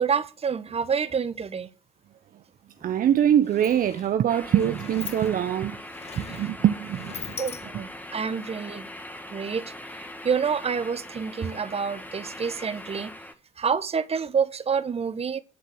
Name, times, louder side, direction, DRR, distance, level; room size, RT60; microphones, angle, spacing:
voice 1, 0.0-1.7 7.4-8.9 9.3-9.6 10.2-13.1 13.6-15.4, right 6 dB, 35° right, 1.4 m, -27 dB
Sliding door, 2.8-2.9 3.2-8.1, left 7 dB, 35° left, 0.9 m, -42 dB
voice 2, 2.8-5.8 6.1-7.4, right 10 dB, 55° right, 0.9 m, -23 dB
sound 1, 4.3-13.3, left 1 dB, 10° left, 2.1 m, -41 dB
10.5 x 7.8 x 6.3 m
hypercardioid pair, 55°, 17 cm